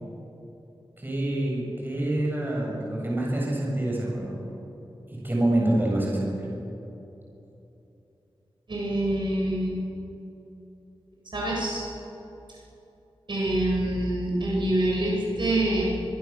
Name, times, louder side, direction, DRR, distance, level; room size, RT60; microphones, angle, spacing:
voice 1, 1.0-4.4 5.1-6.5, right 1 dB, 20° right, -3 dB, 7.4 m, -26 dB
voice 2, 8.7-9.8 11.3-11.9 13.3-15.8, right 1 dB, 55° right, -3 dB, 7.0 m, -26 dB
24.0 x 23.0 x 7.3 m, 2.9 s
wide cardioid pair, 90°, 9 cm